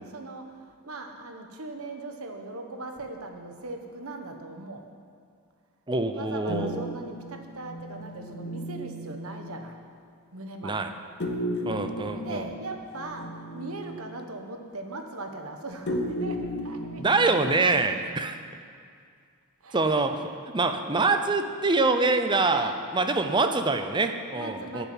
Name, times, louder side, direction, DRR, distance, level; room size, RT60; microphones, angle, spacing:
voice 1, 0.0-4.9 6.1-9.8 10.3-10.9 12.2-17.4 19.6-20.2 20.7-21.8 22.5-22.8 24.3-24.9, right 2 dB, 85° right, 4 dB, 1.3 m, -39 dB
voice 2, 5.9-6.8 10.6-10.9 11.7-12.5 17.0-18.4 19.7-20.3 20.5-24.9, right 3 dB, 20° right, 7 dB, 0.6 m, -25 dB
sound 1, 6.5-9.6 11.2-14.1 15.9-18.0, equal, 50° left, 1.0 m, -35 dB
11.5 x 6.9 x 9.1 m, 2.2 s
head